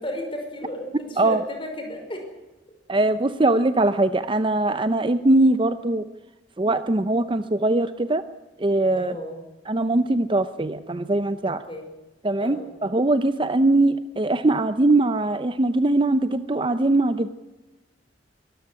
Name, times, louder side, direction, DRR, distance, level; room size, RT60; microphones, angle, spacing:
voice 1, 0.0-2.2 8.9-9.4 11.4-11.9 12.4-12.7, equal, 30° left, 4 dB, 5.4 m, -34 dB
voice 2, 2.9-6.0 6.6-8.2 8.6-9.1 9.7-11.6 12.2-17.3, right 2 dB, 30° right, 12 dB, 0.6 m, -21 dB
22.5 x 13.5 x 10.0 m, 1.1 s
head